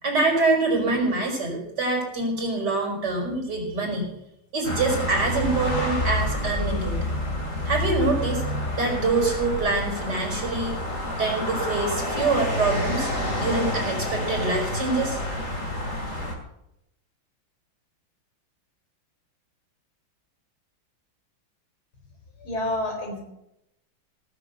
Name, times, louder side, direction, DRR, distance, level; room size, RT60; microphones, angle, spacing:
voice 1, 0.0-4.1 4.5-7.0 7.6-8.4 8.7-10.7 11.2-13.1 13.4-15.2, right 3 dB, 50° right, 0 dB, 5.0 m, -25 dB
sound 1, 4.6-16.3, left 1 dB, 35° left, 3.1 m, -28 dB
voice 2, 22.4-23.2, left 1 dB, 80° left, 3 dB, 4.9 m, -28 dB
18.0 x 7.0 x 7.9 m, 0.82 s
omnidirectional pair, 2.3 m